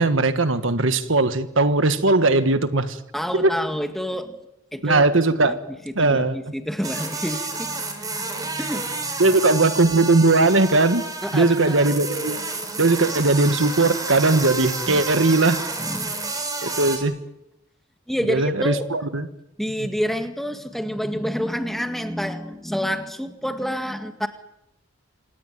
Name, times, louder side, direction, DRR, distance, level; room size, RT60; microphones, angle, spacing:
voice 1, 0.0-3.0 3.3-3.5 4.8-5.6 5.9-6.4 9.2-11.1 11.3-12.4 12.8-15.6 16.6-17.2 18.3-19.3, right 2 dB, 70° right, 10 dB, 1.5 m, -19 dB
voice 2, 3.1-4.4 4.7-5.0 5.5-9.2 11.2-11.9 14.9-15.0 15.8-16.3 18.1-18.9 19.6-24.3, equal, ahead, 6 dB, 2.0 m, -28 dB
sound 1, 6.8-17.0, right 3 dB, 20° right, 4.9 m, -30 dB
27.0 x 18.0 x 9.3 m, 0.86 s
head